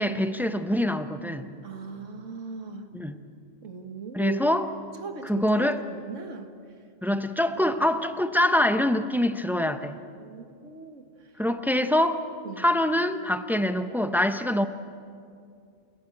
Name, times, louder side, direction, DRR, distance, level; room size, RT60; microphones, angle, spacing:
voice 1, 0.0-1.5 2.9-3.2 4.1-4.7 5.2-5.8 7.0-10.0 11.4-12.2 12.6-14.7, left 1 dB, ahead, 9 dB, 0.8 m, -24 dB
voice 2, 1.6-2.9 3.6-4.4 5.0-6.5 10.2-11.1 12.4-12.7, right 5 dB, 90° right, 7 dB, 1.9 m, -39 dB
29.5 x 17.0 x 8.7 m, 2.4 s
omnidirectional pair, 1.2 m